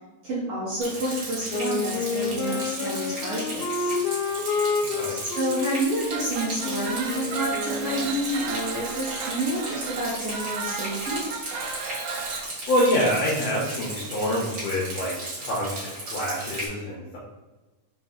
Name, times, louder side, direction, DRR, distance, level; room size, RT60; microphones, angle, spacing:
voice 1, 0.2-3.9 5.2-11.2, right 1 dB, 65° right, -8 dB, 1.6 m, -29 dB
Rain, 0.8-16.7, right 2 dB, 45° right, 1.4 m, -35 dB
Wind instrument woodwind instrument, 1.5-8.1, left 4 dB, 90° left, 2.2 m, -29 dB
voice 2, 4.8-5.2 12.7-15.1 15.4-17.2, equal, 75° left, -5 dB, 1.5 m, -26 dB
sound 1, 6.0-12.5, right 5 dB, 80° right, 1.9 m, -34 dB
5.2 x 2.3 x 3.6 m, 1.2 s
omnidirectional pair, 3.7 m